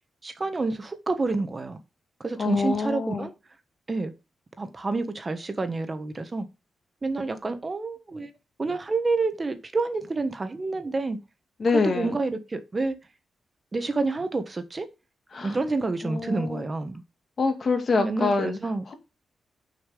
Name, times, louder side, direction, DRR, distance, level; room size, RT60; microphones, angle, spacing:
voice 1, 0.2-1.8 2.2-3.3 3.9-4.1 4.6-6.5 7.0-8.3 8.6-11.2 11.8-13.0 13.7-14.9 15.4-17.0 17.9-18.9, right 3 dB, 30° right, 1.3 m, -28 dB
voice 2, 2.4-3.3 11.6-12.1 15.3-15.6 16.0-16.6 17.4-18.6, left 4 dB, 50° left, 2.2 m, -25 dB
6.6 x 5.7 x 5.1 m
cardioid pair, 100°, 0 cm